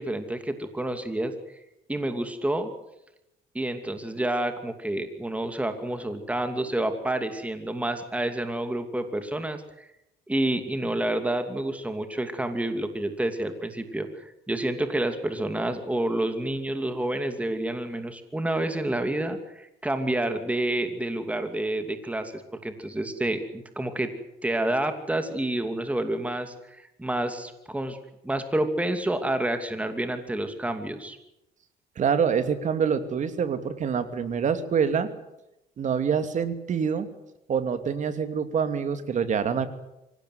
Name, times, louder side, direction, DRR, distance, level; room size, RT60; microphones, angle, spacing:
voice 1, 0.0-1.3 1.9-2.7 3.5-9.9 10.3-24.1 24.4-28.0 28.2-31.2, right 1 dB, 10° right, 7 dB, 2.7 m, -29 dB
voice 2, 32.0-35.1 35.8-37.1 37.5-39.7, right 6 dB, 45° right, 9 dB, 2.7 m, -26 dB
25.0 x 17.5 x 9.5 m, 0.90 s
cardioid pair, 110°, 17 cm